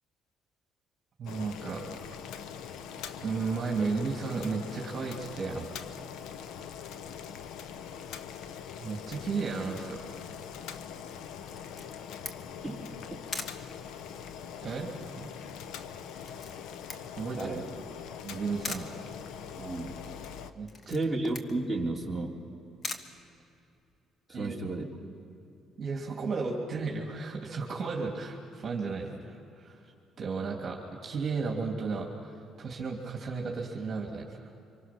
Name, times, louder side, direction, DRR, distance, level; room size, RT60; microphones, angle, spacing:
voice 1, 1.2-1.8 3.2-5.7 8.8-10.0 14.6-15.3 17.1-17.5 18.2-18.9 20.5-21.0 24.3-24.5 25.8-29.8 30.2-34.5, right 4 dB, 40° right, -1 dB, 3.0 m, -34 dB
Boiling, 1.3-20.5, left 8 dB, 85° left, 0.9 m, -43 dB
Camera, 11.5-24.0, left 4 dB, 40° left, 1.5 m, -44 dB
voice 2, 19.6-20.0 20.9-22.4 24.3-24.8, right 2 dB, 5° right, -3 dB, 3.3 m, -32 dB
26.0 x 25.0 x 6.1 m, 2.7 s
cardioid pair, 110°, 0 cm